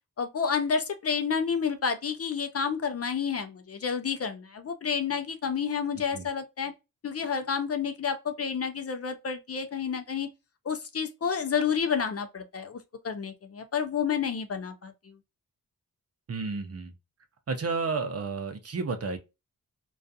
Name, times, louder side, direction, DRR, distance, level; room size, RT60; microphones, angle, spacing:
voice 1, 0.2-6.7 7.0-10.3 10.7-12.8 13.0-15.1, left 6 dB, 45° left, 0.4 m, -30 dB
voice 2, 16.3-16.9 17.5-19.2, right 4 dB, 45° right, 0.5 m, -31 dB
2.4 x 2.3 x 2.5 m
wide cardioid pair, 120°, 35 cm